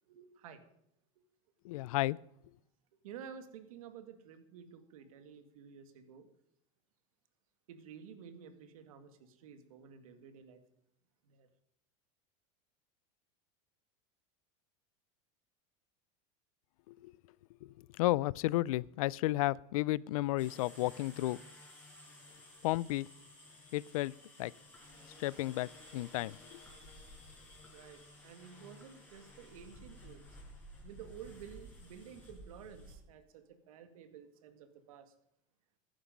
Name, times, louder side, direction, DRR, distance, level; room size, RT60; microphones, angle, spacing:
voice 1, 0.1-0.6 3.0-6.3 7.7-10.6 11.2-11.5 27.7-30.2 30.8-35.1, right 7 dB, 85° right, 2.1 m, -52 dB
voice 2, 1.6-2.2 16.9-17.1 17.6-21.4 22.6-23.1 23.7-24.1 24.4-24.5 25.2-26.6, left 18 dB, 80° left, 0.4 m, -33 dB
sound 1, 20.4-32.9, left 1 dB, 10° left, 5.0 m, -55 dB
14.5 x 11.5 x 5.2 m
supercardioid pair, 135°, 18 cm